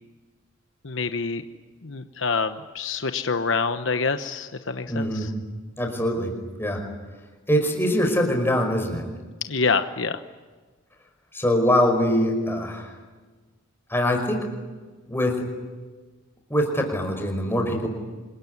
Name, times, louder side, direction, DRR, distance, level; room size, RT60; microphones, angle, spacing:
voice 1, 0.8-1.4 1.8-5.3 9.5-10.2, left 4 dB, 70° left, 9 dB, 1.0 m, -26 dB
voice 2, 4.9-5.3 5.8-6.3 6.6-6.8 7.5-9.1 11.3-12.9 13.9-14.4 15.1-15.4 16.5-17.9, equal, 10° left, 2 dB, 5.2 m, -23 dB
26.5 x 23.0 x 9.7 m, 1.3 s
head